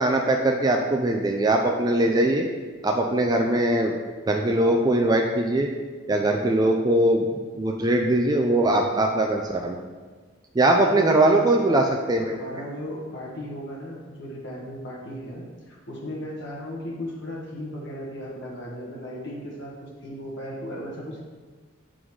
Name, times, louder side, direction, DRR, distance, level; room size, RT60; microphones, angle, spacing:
voice 1, 0.0-2.4 2.8-3.9 4.3-5.7 6.1-7.3 7.6-9.8 10.5-12.4, right 1 dB, 20° right, 2 dB, 0.4 m, -21 dB
voice 2, 10.8-11.5 12.2-21.2, left 1 dB, 60° left, -4 dB, 1.3 m, -36 dB
8.1 x 3.8 x 4.7 m, 1.5 s
head